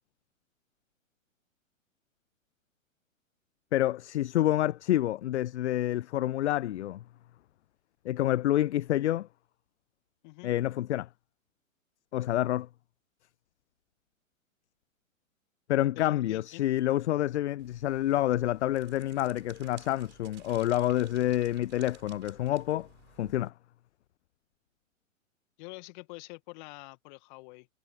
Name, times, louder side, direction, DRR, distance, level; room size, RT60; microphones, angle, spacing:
voice 1, 3.7-7.0 8.0-9.3 10.4-11.1 12.1-12.7 15.7-22.9 23.2-23.5, left 13 dB, 60° left, 0.5 m, -28 dB
voice 2, 15.9-16.6 25.6-27.7, left 26 dB, 35° left, 1.4 m, -46 dB
sound 1, 17.6-23.5, right 15 dB, 25° right, 5.0 m, -56 dB
figure-of-eight pair, 115°, 40 cm